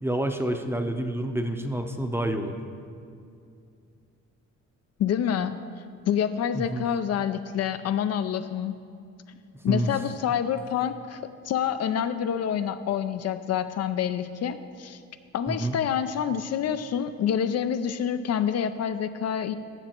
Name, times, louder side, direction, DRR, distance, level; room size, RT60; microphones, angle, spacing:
voice 1, 0.0-2.5 6.5-6.9 9.7-9.9 15.5-15.8, right 1 dB, 10° right, 5 dB, 0.6 m, -28 dB
voice 2, 5.0-5.6 6.1-8.8 9.6-15.0 15.3-19.5, left 8 dB, 55° left, 10 dB, 0.4 m, -27 dB
13.5 x 6.9 x 2.9 m, 2.4 s
cardioid pair, 90°, 30 cm